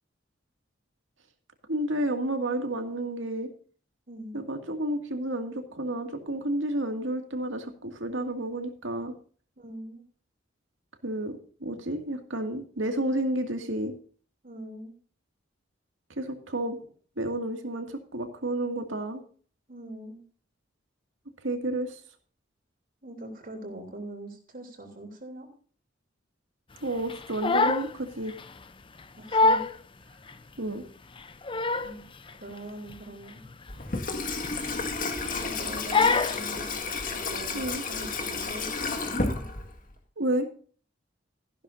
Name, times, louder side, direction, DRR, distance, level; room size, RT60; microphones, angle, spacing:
voice 1, 1.7-3.5 4.3-9.1 11.0-13.9 16.2-16.8 17.2-19.2 21.4-22.0 26.8-28.3 30.6-30.8 37.5-37.8 40.2-40.5, right 1 dB, 75° right, 6 dB, 2.2 m, -31 dB
voice 2, 4.1-4.4 9.6-10.0 14.4-14.9 19.7-20.2 23.0-25.5 29.2-29.6 30.0-30.3 31.8-32.1 32.4-33.4 35.4-36.7 37.1-37.6 37.9-39.5, right 1 dB, 45° right, 2 dB, 3.3 m, -42 dB
Crying sobbing, 27.1-27.9 28.3-28.5 29.0-29.1 29.3-29.8 30.3-30.4 31.2-32.0 32.3-32.5 32.9-33.0 33.4-33.5 34.3-34.9 35.2-35.5 35.9-36.4, left 3 dB, 25° left, 0.6 m, -25 dB
Water tap faucet / Sink (filling or washing), 33.7-39.9, left 3 dB, 45° left, 1.9 m, -32 dB
14.5 x 12.0 x 2.7 m, 0.43 s
head